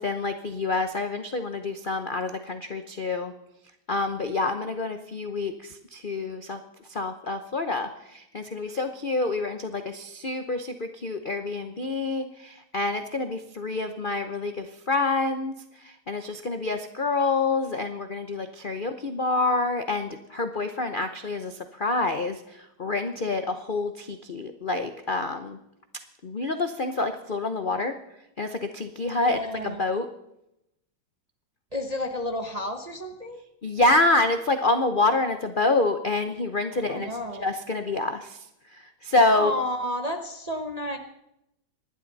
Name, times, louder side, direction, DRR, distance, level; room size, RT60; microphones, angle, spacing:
voice 1, 0.0-3.3 3.9-6.6 6.9-15.5 15.8-22.4 22.8-25.6 26.2-27.9 28.4-30.1 33.6-37.1 37.4-38.4 38.7-39.6, left 3 dB, 50° left, 7 dB, 0.6 m, -27 dB
voice 2, 29.2-29.8 31.7-33.4 36.8-37.5 39.3-41.0, left 1 dB, 30° right, 4 dB, 0.8 m, -31 dB
27.0 x 11.5 x 4.1 m, 0.85 s
omnidirectional pair, 2.1 m